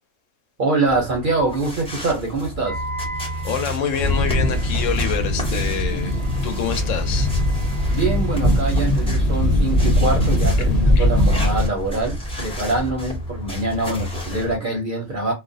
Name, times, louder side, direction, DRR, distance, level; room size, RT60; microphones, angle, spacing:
voice 1, 0.6-2.8 7.9-15.3, right 3 dB, 55° right, 0.6 m, -24 dB
sound 1, 0.9-14.6, left 1 dB, 5° left, 0.5 m, -32 dB
Wind instrument woodwind instrument, 2.6-8.8, right 2 dB, 85° right, 1.0 m, -38 dB
voice 2, 3.4-6.2 6.4-7.3 11.0-11.1, left 7 dB, 75° left, 0.9 m, -26 dB
sound 2, 4.0-11.7, left 1 dB, 35° left, 0.8 m, -20 dB
2.3 x 2.0 x 2.6 m
omnidirectional pair, 1.4 m